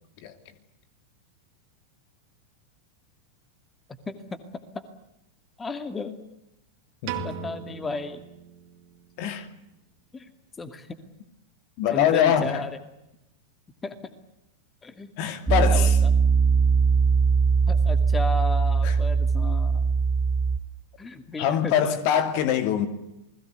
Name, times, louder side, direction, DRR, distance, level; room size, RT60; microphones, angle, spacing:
voice 1, 5.6-6.2 7.2-8.2 10.1-10.3 10.6-10.9 11.9-12.7 13.8-14.1 14.8-15.1 15.5-16.1 17.7-19.8 21.0-22.0, left 3 dB, 15° left, 2.4 m, -34 dB
Piano, 7.1-9.3, right 13 dB, 45° right, 2.6 m, -38 dB
voice 2, 11.8-12.6 15.2-16.0 18.8-19.0 21.4-22.9, left 9 dB, 45° left, 2.4 m, -23 dB
Piano 2, 15.5-20.6, right 5 dB, 10° right, 1.7 m, -21 dB
29.5 x 20.5 x 8.2 m
figure-of-eight pair, 90°, 0 cm